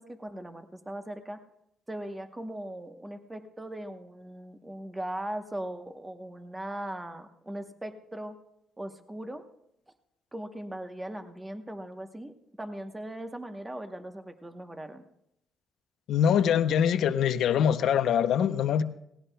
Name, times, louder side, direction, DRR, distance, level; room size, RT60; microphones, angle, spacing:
voice 1, 0.0-1.4 1.9-8.4 8.8-9.4 10.3-15.0, right 1 dB, 15° right, 7 dB, 1.0 m, -39 dB
voice 2, 16.1-18.8, left 8 dB, 75° left, 12 dB, 0.6 m, -24 dB
18.0 x 17.0 x 2.2 m, 0.77 s
cardioid pair, 90°, 0 cm